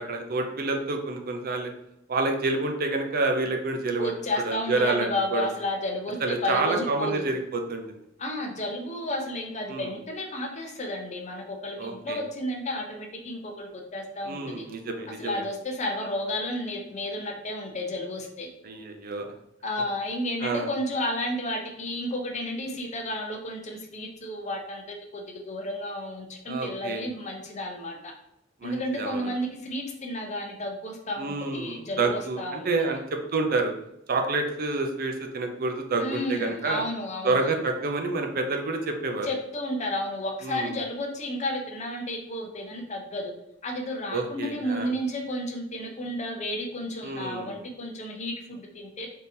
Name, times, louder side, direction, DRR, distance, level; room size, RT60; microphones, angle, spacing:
voice 1, 0.0-1.7 2.1-4.1 4.5-5.5 6.2-8.0 9.7-9.9 11.8-12.2 14.2-15.4 18.6-19.3 20.4-20.7 26.5-27.0 28.6-29.3 31.2-33.7 34.1-36.8 37.2-39.3 40.4-40.7 44.1-44.9 47.0-47.5, right 3 dB, 50° right, 4 dB, 0.5 m, -28 dB
voice 2, 4.0-7.3 8.2-14.6 15.2-18.5 19.6-28.1 28.6-33.0 36.0-37.5 39.2-43.3 43.6-49.1, left 1 dB, 35° left, 3 dB, 0.6 m, -32 dB
3.6 x 2.8 x 2.6 m, 0.80 s
head